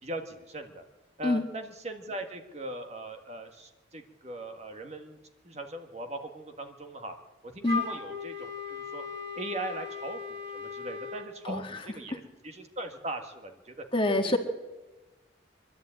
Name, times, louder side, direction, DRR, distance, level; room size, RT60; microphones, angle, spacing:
voice 1, 0.0-0.8 1.2-5.2 5.4-7.1 7.4-9.0 9.3-13.8, right 1 dB, 35° right, 5 dB, 1.6 m, -40 dB
Wind instrument woodwind instrument, 7.6-11.3, left 5 dB, 60° right, 3.5 m, -37 dB
voice 2, 11.4-11.8 13.9-14.4, left 2 dB, 25° left, 4 dB, 1.8 m, -26 dB
25.5 x 11.5 x 8.9 m, 1.1 s
head